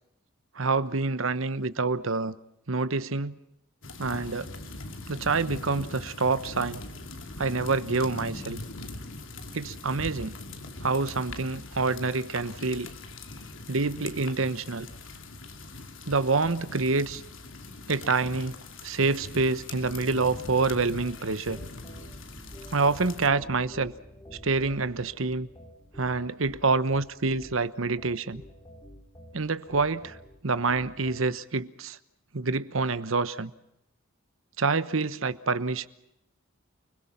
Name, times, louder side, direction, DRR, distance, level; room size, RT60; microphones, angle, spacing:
voice 1, 0.5-2.3 2.7-3.4 4.0-4.5 5.1-6.8 7.4-8.6 9.5-10.4 10.8-12.9 13.7-14.9 16.1-17.2 17.9-18.6 18.8-21.6 22.7-23.9 24.4-25.5 26.0-28.4 29.3-30.2 30.4-32.0 32.3-33.5 34.6-35.9, right 3 dB, 75° right, 1.1 m, -27 dB
sound 1, 3.8-23.3, left 2 dB, 65° left, 2.7 m, -42 dB
sound 2, 19.7-31.3, equal, 20° left, 4.7 m, -48 dB
30.0 x 21.5 x 5.9 m
head